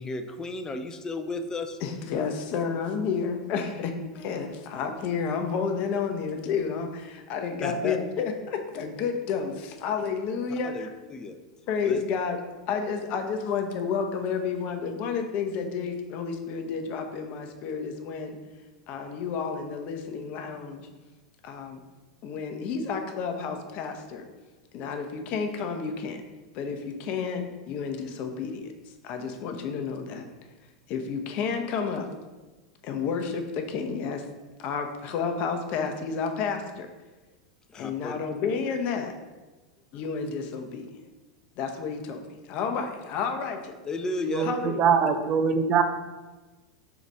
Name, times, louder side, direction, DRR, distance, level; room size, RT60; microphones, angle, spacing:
voice 1, 0.0-1.8 7.6-8.0 10.5-11.4 11.8-12.0 37.7-38.2 43.8-44.5, left 3 dB, 20° left, 7 dB, 0.6 m, -33 dB
voice 2, 1.8-10.9 11.7-12.4 12.7-18.4 18.9-20.9 21.4-21.8 22.2-24.3 24.7-26.2 26.5-28.7 29.0-30.3 30.9-32.1 32.8-34.3 34.6-36.9 37.7-39.1 39.9-40.9 41.6-43.7 44.4-45.0, left 5 dB, 50° left, 5 dB, 0.8 m, -31 dB
voice 3, 44.3-45.8, right 6 dB, 40° right, 8 dB, 0.5 m, -23 dB
4.9 x 4.1 x 4.7 m, 1.2 s
hypercardioid pair, 100°, 3 cm